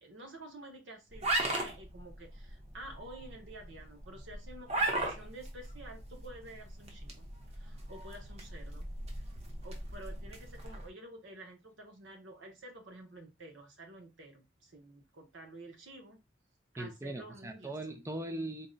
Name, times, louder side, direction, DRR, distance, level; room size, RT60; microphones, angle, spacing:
voice 1, 0.0-7.3 7.6-8.9 9.2-9.3 9.6-16.2 16.7-17.7, right 1 dB, 85° right, 1.1 m, -50 dB
sound 1, 1.1-10.9, right 2 dB, 35° right, 0.8 m, -38 dB
voice 2, 16.8-18.7, right 1 dB, 15° right, 0.5 m, -39 dB
3.9 x 2.1 x 3.8 m
head